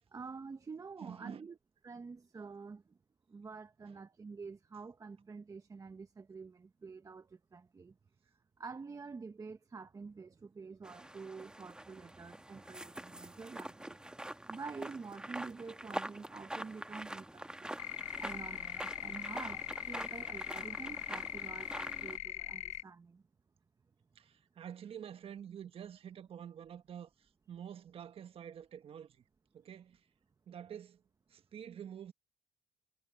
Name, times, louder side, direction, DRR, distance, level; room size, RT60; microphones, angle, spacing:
voice 1, 0.1-1.6 1.8-3.0 3.3-7.9 8.6-14.0 14.5-17.8 18.2-23.2, right 4 dB, 30° right, 1.1 m, -48 dB
voice 2, 1.0-1.5 3.9-4.0 24.1-27.1 27.5-29.2 29.5-30.0 30.5-31.0 31.3-32.1, right 9 dB, 50° right, 1.4 m, -48 dB
sound 1, 10.8-22.2, right 1 dB, 5° right, 1.4 m, -45 dB
sound 2, 17.8-22.8, left 12 dB, 70° left, 0.8 m, -41 dB
supercardioid pair, 80°, 12 cm